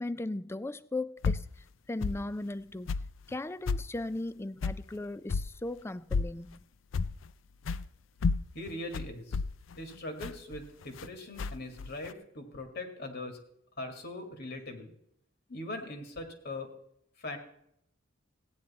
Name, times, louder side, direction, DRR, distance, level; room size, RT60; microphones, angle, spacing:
voice 1, 0.0-1.5 1.9-2.9 3.3-6.6, left 2 dB, 15° left, 0.3 m, -37 dB
sound 1, 1.2-1.5 2.0-2.2 2.9-3.1 3.7-3.9 4.6-4.8 5.3-5.5 6.1-6.4 6.9-7.3 7.7-7.9 8.2-11.1 11.4-12.1, left 4 dB, 85° left, 0.5 m, -31 dB
voice 2, 8.5-9.4 9.8-13.4 13.8-14.9 15.5-16.7 17.2-17.4, left 2 dB, 55° left, 2.1 m, -41 dB
16.0 x 9.5 x 4.2 m
head